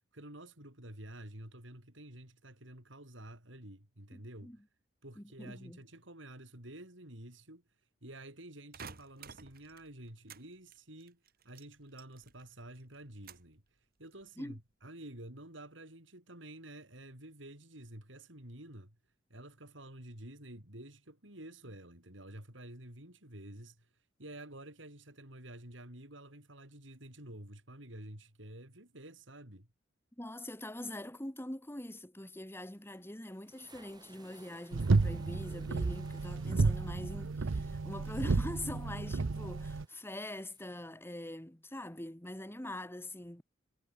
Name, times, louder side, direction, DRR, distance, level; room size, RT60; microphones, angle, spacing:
voice 1, 0.1-4.6 5.0-7.6 8.0-13.6 14.0-19.0 19.3-23.9 24.2-29.7, right 1 dB, 70° right, 6.6 m, -50 dB
voice 2, 4.1-4.6 5.2-5.8 14.4-14.6 30.2-43.4, left 1 dB, 10° left, 2.2 m, -44 dB
sound 1, 8.7-10.5 10.7-12.5 12.8-13.6 14.0-14.5, right 6 dB, 50° right, 2.2 m, -52 dB
sound 2, 32.5-40.8, right 3 dB, 20° right, 7.4 m, -64 dB
sound 3, 34.7-39.8, right 3 dB, 90° right, 0.7 m, -32 dB
head